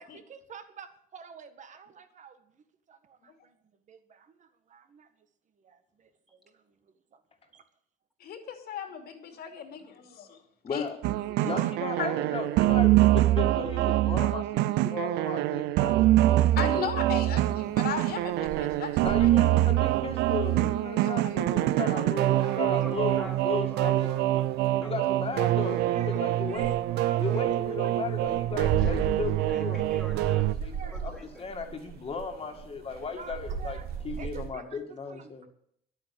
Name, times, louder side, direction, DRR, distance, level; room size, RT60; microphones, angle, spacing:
voice 1, 0.0-3.6 3.9-5.1 5.6-6.8 7.1-7.2 7.5-7.6 11.2-11.7 12.3-12.4 21.9-23.2 25.8-28.3 30.5-31.1 33.2-33.9 34.2-35.5, right 6 dB, 45° right, 10 dB, 1.6 m, -48 dB
voice 2, 8.2-10.4 10.7-10.8 12.0-12.1 16.6-19.3 21.0-21.7, left 8 dB, 70° left, 5 dB, 2.9 m, -37 dB
voice 3, 10.6-11.0 11.4-16.9 19.0-24.1 24.8-26.7 27.2-29.9 30.6-30.7 31.0-31.1 31.4-33.8 34.0-35.5, left 5 dB, 35° left, 3 dB, 2.2 m, -36 dB
sound 1, 11.0-30.5, right 15 dB, 90° right, 0.6 m, -25 dB
sound 2, 17.4-34.5, right 6 dB, 70° right, 2.6 m, -39 dB
voice 4, 22.3-25.1 28.8-29.1 29.5-30.6 30.9-31.5, left 1 dB, ahead, -1 dB, 2.4 m, -46 dB
11.5 x 9.0 x 8.4 m, 0.68 s
cardioid pair, 110°, 17 cm